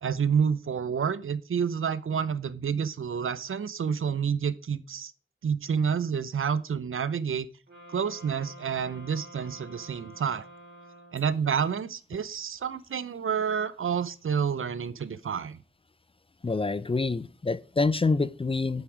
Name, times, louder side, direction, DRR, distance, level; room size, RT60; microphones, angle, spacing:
voice 1, 0.0-5.1 5.4-7.5 7.9-10.4 11.1-15.6, right 7 dB, 75° right, 0.6 m, -29 dB
sound 1, 7.7-11.6, equal, 55° right, 3.8 m, -49 dB
voice 2, 16.4-18.8, left 3 dB, 25° left, 0.4 m, -27 dB
8.2 x 6.0 x 5.0 m
wide cardioid pair, 60°, 21 cm